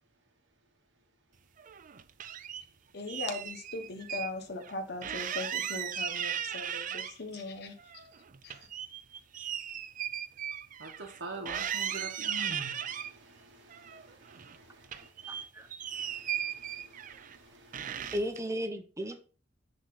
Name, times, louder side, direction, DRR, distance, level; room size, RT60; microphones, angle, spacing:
sound 1, 1.6-2.6 3.1-4.3 4.6-4.7 5.0-7.4 7.8-11.2 11.5-13.1 13.7-14.6 14.8-17.4 17.7-18.4, right 9 dB, 45° right, 0.5 m, -37 dB
voice 1, 2.9-8.0 8.4-8.7, left 3 dB, 60° left, 4 dB, 1.2 m, -39 dB
voice 2, 10.8-15.4 15.9-18.3, right 2 dB, 90° right, 2 dB, 1.2 m, -46 dB
voice 3, 15.3-15.7 18.1-19.2, equal, 15° right, 7 dB, 0.9 m, -35 dB
10.0 x 3.9 x 3.9 m, 0.38 s
head